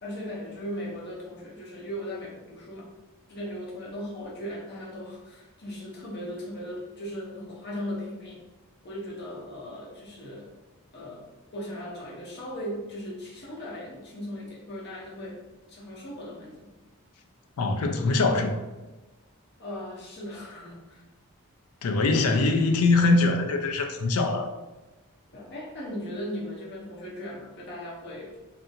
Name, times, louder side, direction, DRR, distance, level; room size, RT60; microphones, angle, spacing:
voice 1, 0.0-2.9 3.3-8.4 8.8-10.5 10.9-11.3 11.5-15.4 15.7-16.7 19.6-21.0 25.3-28.4, equal, 50° left, -4 dB, 0.7 m, -38 dB
voice 2, 17.6-18.6 21.8-24.5, left 3 dB, 90° left, 5 dB, 0.4 m, -23 dB
2.7 x 2.6 x 2.4 m, 1.1 s
head